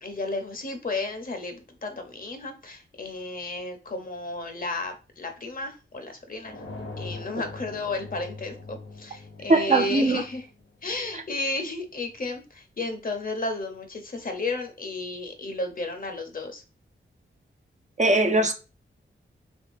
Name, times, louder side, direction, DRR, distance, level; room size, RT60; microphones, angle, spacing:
voice 1, 0.0-6.6 7.0-10.5 10.8-16.6, left 2 dB, 45° left, 0.7 m, -33 dB
sound 1, 6.4-11.1, left 3 dB, 85° left, 1.8 m, -42 dB
voice 2, 9.5-10.2 18.0-18.5, right 2 dB, 35° right, 0.5 m, -20 dB
3.5 x 3.2 x 2.5 m
wide cardioid pair, 75°, 21 cm